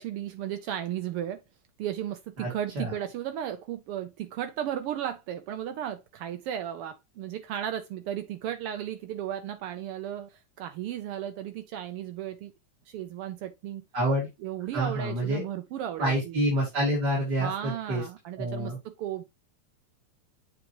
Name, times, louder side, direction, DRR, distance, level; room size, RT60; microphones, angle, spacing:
voice 1, 0.0-1.4 1.8-12.5 12.9-13.8 14.4-16.4 17.4-19.2, right 10 dB, 85° right, 1.2 m, -35 dB
voice 2, 2.4-2.9 13.9-14.3 14.7-15.4 16.0-18.0 18.4-18.8, right 1 dB, 35° right, 2.7 m, -28 dB
7.8 x 5.8 x 3.0 m
omnidirectional pair, 3.3 m